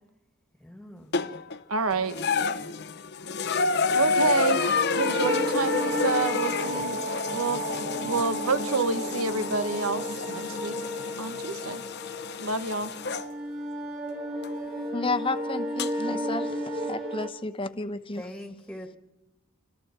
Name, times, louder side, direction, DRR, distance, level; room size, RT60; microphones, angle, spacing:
voice 1, 0.6-1.1 1.9-2.7 6.7-6.9 7.3-8.1 18.1-19.0, equal, 5° left, 5 dB, 2.0 m, -44 dB
sound 1, 1.1-1.6 2.1-13.3 14.4-14.5 15.8-15.9, left 4 dB, 50° left, 0.8 m, -29 dB
voice 2, 1.7-2.2 3.9-7.0 7.3-7.7 8.0-10.7 11.2-11.8 12.4-12.9, right 4 dB, 90° right, 10 dB, 1.4 m, -28 dB
sound 2, 4.7-17.3, right 1 dB, 50° right, 4.4 m, -33 dB
voice 3, 14.9-18.2, left 3 dB, 25° left, 9 dB, 1.0 m, -32 dB
28.5 x 25.5 x 4.5 m, 0.96 s
head